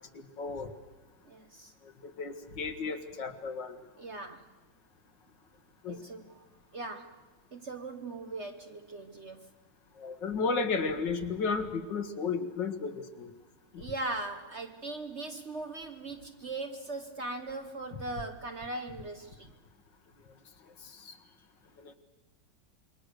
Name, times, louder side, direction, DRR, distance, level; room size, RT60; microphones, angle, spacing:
voice 1, 0.1-0.7 2.0-3.8 5.8-6.0 10.0-13.3 13.7-13.8 21.1-21.2 21.8-21.9, left 4 dB, 65° left, 2.2 m, -33 dB
voice 2, 1.2-1.7 4.0-4.5 5.9-6.5 6.7-7.2 7.5-9.5 13.8-19.5, right 2 dB, 40° right, 1.2 m, -39 dB
27.0 x 23.0 x 6.6 m
omnidirectional pair, 2.1 m